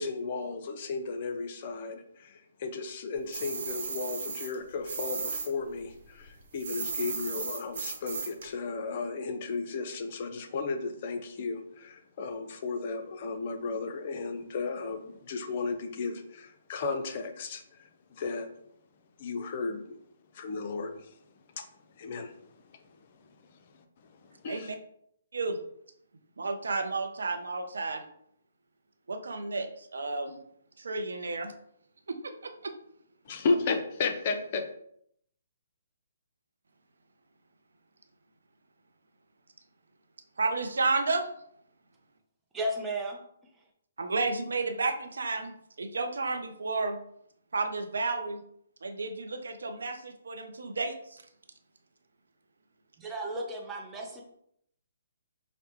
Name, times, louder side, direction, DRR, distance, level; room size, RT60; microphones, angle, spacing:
voice 1, 0.0-18.5 19.2-20.0 20.3-21.1 21.6-21.7 21.9-22.3 23.7-23.8 24.3-24.7 33.3-34.6, left 4 dB, 45° left, 6 dB, 0.6 m, -34 dB
sound 1, 3.3-5.5 5.8-8.5, right 5 dB, 55° right, 1.0 m, -35 dB
voice 2, 24.4-24.8 25.3-25.6 26.4-28.0 29.1-30.4 30.8-31.5 32.1-32.7 40.4-41.3 44.0-47.0 47.5-48.4 48.8-51.2, right 3 dB, 75° right, 6 dB, 0.6 m, -32 dB
voice 3, 42.5-43.7 53.0-54.2, right 1 dB, 10° right, -1 dB, 0.7 m, -35 dB
4.9 x 2.1 x 3.0 m, 0.70 s
hypercardioid pair, 140°, 0 cm